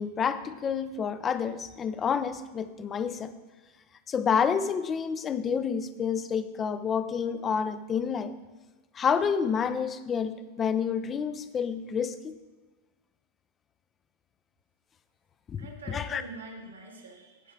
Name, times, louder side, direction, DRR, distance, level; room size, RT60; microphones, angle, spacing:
voice 1, 0.0-3.3 4.1-8.4 8.9-12.4 15.5-16.2, left 7 dB, 25° left, 0.6 m, -29 dB
voice 2, 15.6-17.5, right 3 dB, 75° right, 2.1 m, -45 dB
16.0 x 5.4 x 4.8 m
figure-of-eight pair, 90°, 0 cm